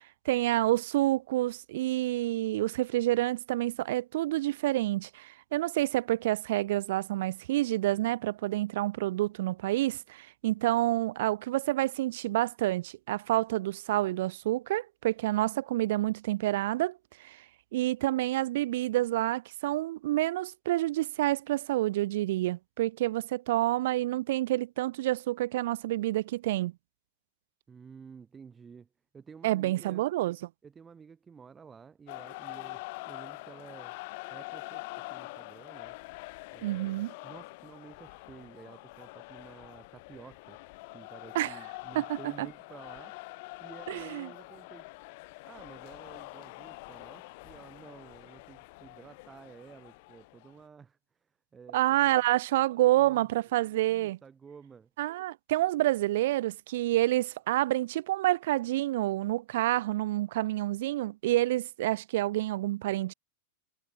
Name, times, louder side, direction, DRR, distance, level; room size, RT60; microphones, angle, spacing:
voice 1, 0.0-17.4 17.7-26.7 29.4-30.4 36.6-37.1 41.3-41.6 41.9-42.5 43.9-44.3 51.7-54.2 55.0-63.1, right 16 dB, 65° right, 0.4 m, -28 dB
voice 2, 27.7-28.9 29.1-30.0 30.6-33.9 34.3-36.0 36.5-40.6 40.9-44.9 45.4-52.2 52.8-53.3 53.9-54.9, right 6 dB, 20° right, 2.0 m, -52 dB
sound 1, 32.1-50.6, left 25 dB, 55° left, 0.9 m, -45 dB
hypercardioid pair, 105°, 0 cm